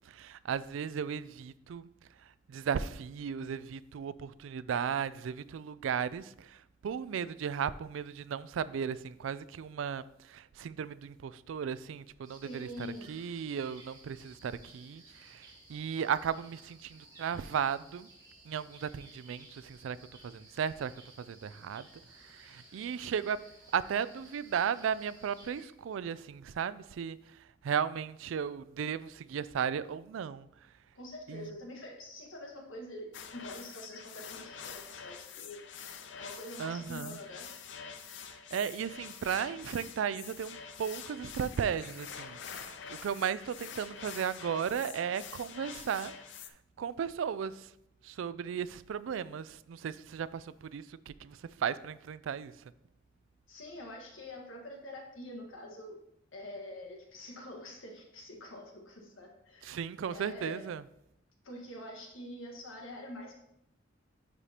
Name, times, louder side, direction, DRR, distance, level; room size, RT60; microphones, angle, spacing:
voice 1, 0.1-1.9 2.5-6.6 6.8-18.1 18.5-20.0 20.2-20.9 21.2-21.9 22.2-23.4 23.7-27.2 27.6-30.5 31.3-31.5 36.6-37.2 38.5-46.1 46.8-47.7 48.0-52.5 59.6-60.8, right 7 dB, 75° right, 0.3 m, -35 dB
sound 1, 12.2-25.6, right 2 dB, 20° right, 1.9 m, -57 dB
voice 2, 12.3-13.1 30.9-35.6 36.2-37.5 53.5-56.0 56.3-60.6 61.4-63.3, left 1 dB, 85° left, 1.6 m, -45 dB
sound 2, 33.1-46.5, left 7 dB, 65° left, 0.6 m, -46 dB
10.0 x 4.8 x 2.9 m
head